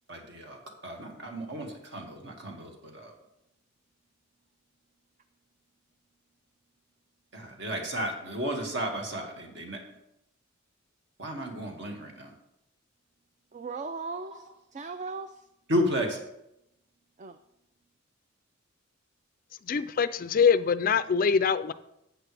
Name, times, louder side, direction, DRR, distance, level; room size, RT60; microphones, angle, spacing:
voice 1, 0.1-3.1 7.3-9.8 11.2-12.3 15.7-16.2, equal, 60° right, 2 dB, 2.0 m, -33 dB
voice 2, 13.5-15.5 17.2-17.4, right 4 dB, 35° right, 9 dB, 0.4 m, -38 dB
voice 3, 19.6-21.7, left 6 dB, 45° left, 14 dB, 0.4 m, -24 dB
12.0 x 8.2 x 3.4 m, 0.82 s
head